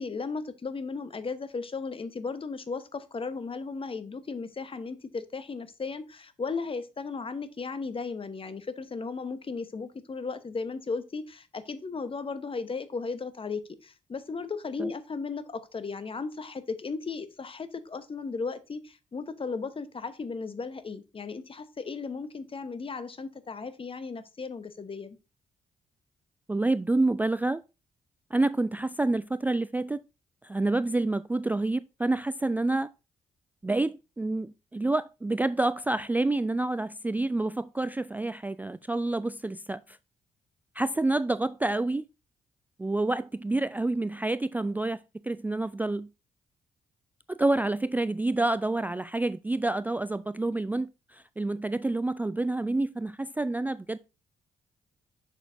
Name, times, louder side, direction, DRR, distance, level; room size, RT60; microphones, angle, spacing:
voice 1, 0.0-25.2, left 4 dB, 35° left, 1.0 m, -36 dB
voice 2, 26.5-27.6 28.3-30.0 30.4-32.9 33.6-40.0 40.8-42.0 42.8-46.1 47.3-54.0, right 2 dB, 10° right, 0.3 m, -28 dB
6.5 x 6.4 x 2.6 m
hypercardioid pair, 45°, 15 cm